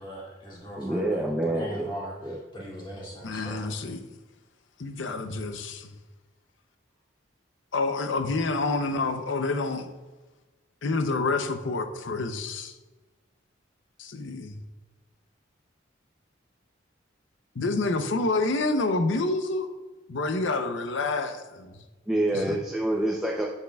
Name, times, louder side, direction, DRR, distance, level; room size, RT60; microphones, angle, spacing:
voice 1, 0.0-3.7, equal, 25° left, -6 dB, 2.4 m, -40 dB
voice 2, 0.8-1.9 2.2-2.4 22.1-23.4, right 1 dB, 5° right, -2 dB, 0.5 m, -27 dB
voice 3, 3.2-4.0 4.8-5.9 7.7-9.9 10.8-12.8 14.0-14.5 17.5-19.7 20.1-21.8 22.3-22.6, left 3 dB, 75° left, 8 dB, 0.6 m, -28 dB
8.3 x 8.3 x 2.3 m, 1.2 s
head